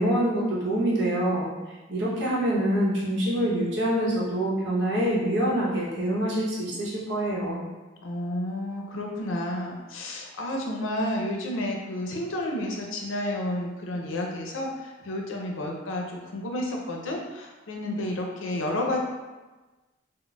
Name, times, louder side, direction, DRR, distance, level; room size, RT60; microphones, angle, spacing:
voice 1, 0.0-1.5 1.9-7.6, right 1 dB, 65° right, -6 dB, 0.8 m, -25 dB
voice 2, 8.0-14.7 15.0-19.0, left 1 dB, 85° left, 0 dB, 0.5 m, -31 dB
3.9 x 2.1 x 2.3 m, 1.2 s
head